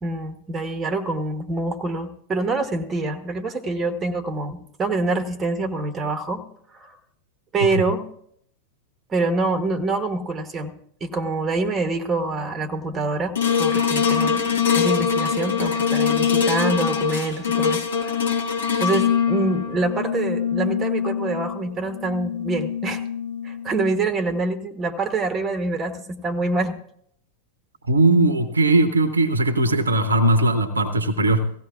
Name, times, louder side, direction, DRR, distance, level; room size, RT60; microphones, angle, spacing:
voice 1, 0.0-6.4 6.7-7.0 7.5-8.1 9.1-10.7 11.0-13.3 13.6-18.1 18.8-23.0 23.4-26.7, right 2 dB, 20° right, 9 dB, 1.1 m, -26 dB
sound 1, 13.4-23.8 24.3-24.4, left 7 dB, 65° left, 1.3 m, -23 dB
voice 2, 27.9-31.5, right 2 dB, 75° right, 11 dB, 0.8 m, -19 dB
18.0 x 15.5 x 2.5 m, 0.68 s
figure-of-eight pair, 90°, 0 cm